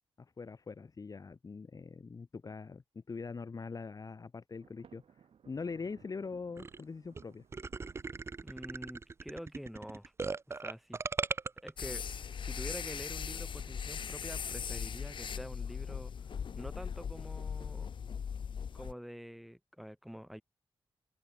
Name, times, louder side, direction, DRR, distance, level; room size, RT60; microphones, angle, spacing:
voice 1, 0.2-5.0 5.5-7.4, left 4 dB, 40° left, 2.2 m, -43 dB
Thunder, 4.6-9.2, right 7 dB, 70° right, 6.2 m, -61 dB
sound 1, 6.6-6.8 7.2-7.3 7.5-11.7, right 4 dB, 25° right, 0.4 m, -38 dB
voice 2, 8.4-10.1 10.5-11.0 11.6-16.1 16.5-17.9 18.7-20.4, equal, ahead, 7.1 m, -47 dB
sound 2, 11.8-18.9, left 7 dB, 55° left, 0.8 m, -39 dB
open air
wide cardioid pair, 120°, 10 cm